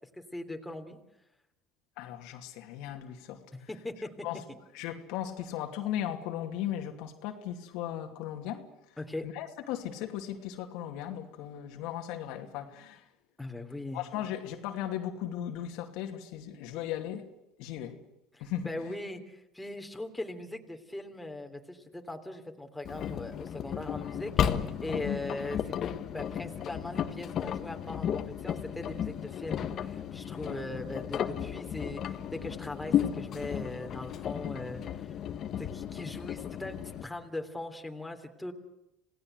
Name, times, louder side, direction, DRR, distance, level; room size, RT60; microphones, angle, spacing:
voice 1, 0.1-1.0 3.5-4.1 4.5-4.6 9.0-9.3 13.4-14.0 18.4-25.7 26.1-35.1 35.6-38.5, left 2 dB, 5° left, 3.1 m, -40 dB
voice 2, 2.0-3.7 4.2-4.4 4.7-8.7 9.2-13.0 13.9-17.2 17.6-18.0 18.4-18.7 24.9-25.2, left 11 dB, 75° left, 2.6 m, -37 dB
Engine, 22.8-37.0, left 9 dB, 50° left, 1.6 m, -34 dB
27.5 x 18.0 x 8.0 m
supercardioid pair, 105°, 0 cm